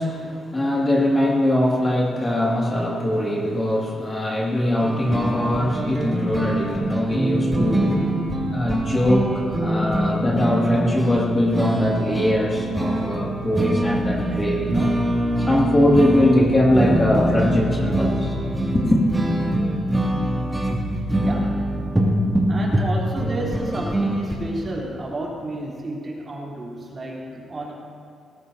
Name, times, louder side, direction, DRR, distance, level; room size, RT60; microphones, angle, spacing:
voice 1, 0.0-8.0 8.5-14.9 15.4-18.4 18.7-19.0, left 1 dB, 20° left, -3 dB, 2.2 m, -21 dB
sound 1, 4.8-24.3, right 1 dB, 10° right, 2.6 m, -24 dB
sound 2, 11.7-21.9, right 2 dB, 50° right, 0.8 m, -33 dB
voice 2, 21.2-21.6 22.5-27.7, right 1 dB, 30° right, -4 dB, 3.3 m, -31 dB
19.5 x 17.5 x 2.8 m, 2.5 s
cardioid pair, 115°, 0 cm